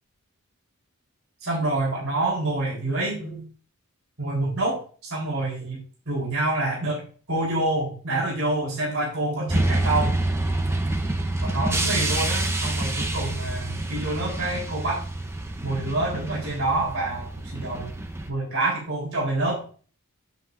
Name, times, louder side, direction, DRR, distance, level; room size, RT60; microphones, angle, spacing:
voice 1, 1.4-3.4 4.2-4.8 5.1-5.8 6.1-10.1 11.4-15.0 15.6-17.9 18.3-19.6, right 2 dB, 65° right, -3 dB, 4.0 m, -27 dB
sound 1, 9.5-18.3, right 2 dB, 10° right, 0.8 m, -27 dB
9.5 x 8.0 x 2.6 m, 0.39 s
head